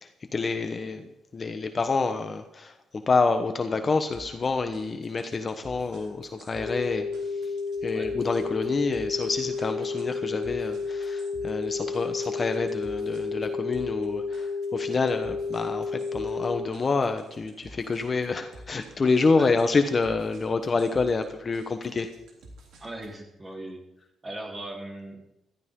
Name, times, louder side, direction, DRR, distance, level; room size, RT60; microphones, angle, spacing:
voice 1, 0.0-1.0 1.3-7.1 7.8-22.1, left 4 dB, 35° left, 7 dB, 1.1 m, -27 dB
sound 1, 4.1-23.2, right 1 dB, 75° right, 3.2 m, -51 dB
sound 2, 6.6-16.6, left 4 dB, ahead, 3.7 m, -31 dB
voice 2, 22.8-23.8 24.2-25.2, right 1 dB, 20° right, 0 dB, 3.8 m, -39 dB
15.5 x 14.0 x 3.8 m, 0.87 s
cardioid pair, 90°, 0 cm